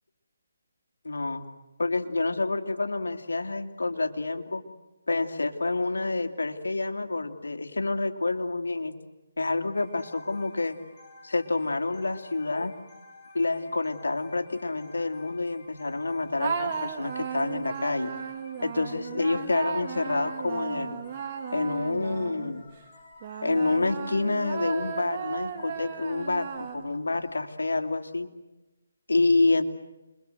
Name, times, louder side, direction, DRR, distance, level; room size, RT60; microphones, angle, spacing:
voice 1, 1.0-1.4 1.8-4.6 5.1-9.0 9.4-10.8 11.2-12.7 13.3-18.1 18.6-21.0 21.5-22.7 23.4-28.3 29.1-29.6, left 3 dB, 85° left, 5 dB, 2.8 m, -28 dB
sound 1, 9.7-28.1, left 2 dB, 30° left, 4.9 m, -53 dB
sound 2, 16.4-22.6 23.2-27.1, right 7 dB, 30° right, 2.5 m, -35 dB
29.0 x 23.5 x 8.0 m, 1.1 s
figure-of-eight pair, 160°, 0 cm